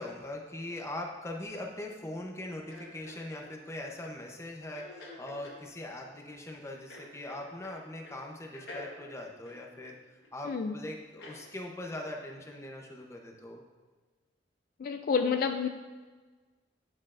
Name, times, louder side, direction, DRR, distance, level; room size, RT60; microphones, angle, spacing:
voice 1, 0.0-10.0 10.3-13.6, left 1 dB, 15° left, 1 dB, 0.7 m, -41 dB
sound 1, 2.7-3.5 4.7-5.6 6.9-7.8 8.0-8.2 8.5-10.3 11.2-11.4 11.9-12.1, left 2 dB, 70° left, 1.4 m, -48 dB
voice 2, 10.4-10.8 14.8-15.7, left 5 dB, 55° left, 6 dB, 0.3 m, -29 dB
9.7 x 6.2 x 2.5 m, 1.3 s
head